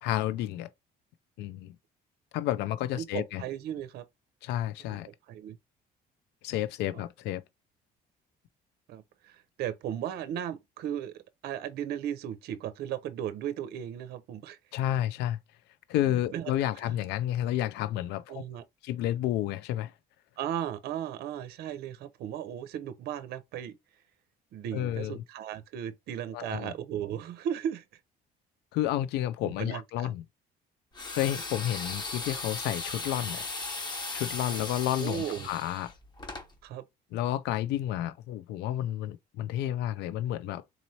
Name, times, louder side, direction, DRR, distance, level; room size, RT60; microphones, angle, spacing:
voice 1, 0.0-0.7 1.4-1.8 2.3-3.4 4.4-5.1 6.4-7.4 14.7-15.4 15.9-18.4 18.8-19.9 24.7-25.2 26.3-26.7 28.7-30.2 31.1-33.5 34.1-35.9 37.1-40.6, left 12 dB, 85° left, 0.4 m, -31 dB
voice 2, 3.0-4.0 4.9-5.0 5.3-5.6 8.9-14.6 16.3-16.5 16.8-16.9 18.3-18.6 20.4-23.8 24.5-27.8 29.4-30.1 35.0-35.5 36.6-36.8, right 10 dB, 70° right, 0.6 m, -36 dB
sound 1, 30.9-36.5, left 3 dB, 25° left, 1.1 m, -37 dB
4.1 x 3.0 x 2.7 m
cardioid pair, 110°, 17 cm